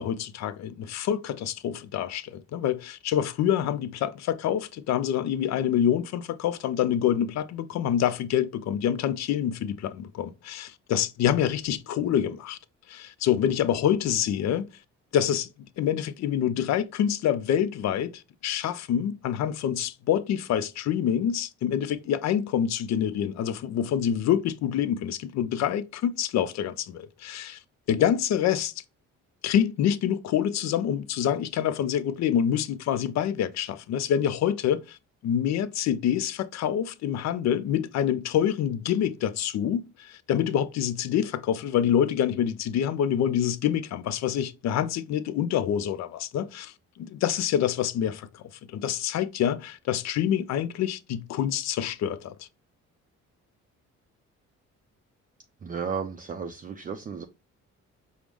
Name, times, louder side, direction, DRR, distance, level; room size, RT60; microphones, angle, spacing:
voice 1, 0.0-12.6 12.9-14.7 15.1-15.5 15.8-27.6 27.9-28.7 29.4-35.0 35.2-48.4 48.7-52.5, left 9 dB, 65° left, 0.5 m, -26 dB
voice 2, 55.6-57.3, right 6 dB, 30° right, 0.4 m, -33 dB
4.6 x 2.1 x 3.4 m
cardioid pair, 90°, 30 cm